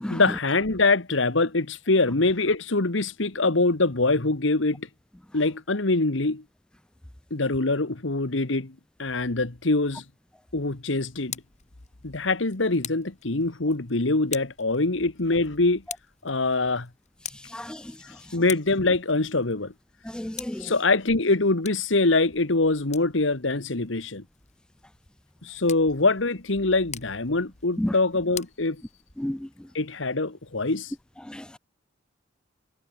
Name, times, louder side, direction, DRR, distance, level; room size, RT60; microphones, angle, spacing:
voice 1, 0.1-4.9 5.3-6.4 7.3-8.7 9.0-10.0 10.5-11.4 12.0-15.8 16.2-16.9 18.3-19.7 20.6-24.2 25.4-28.8 29.7-30.9, left 3 dB, 80° left, 1.6 m, -24 dB
Tick, 11.0-29.4, left 10 dB, 40° left, 6.8 m, -45 dB
voice 2, 20.1-20.7 27.8-27.9 29.2-29.4 31.3-31.6, left 1 dB, 5° left, 0.3 m, -31 dB
head